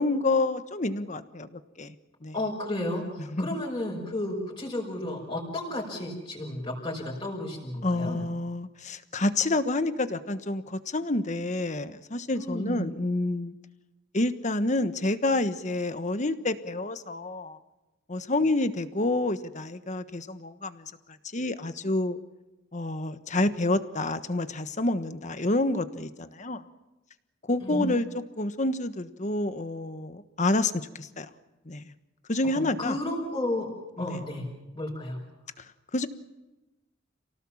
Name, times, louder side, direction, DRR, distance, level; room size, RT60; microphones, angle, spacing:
voice 1, 0.0-1.9 2.2-2.3 3.3-3.6 7.8-13.5 14.1-17.6 18.1-20.9 21.3-22.2 22.7-26.6 27.5-28.1 28.4-31.3 31.7-31.9 32.3-33.0 34.0-34.2 35.9-36.1, left 2 dB, 40° left, 11 dB, 1.3 m, -28 dB
voice 2, 2.3-8.2 12.4-12.9 27.6-27.9 32.4-33.7 34.0-34.5 34.7-35.2, left 1 dB, 25° left, -5 dB, 5.6 m, -32 dB
28.5 x 18.0 x 7.3 m, 1.0 s
head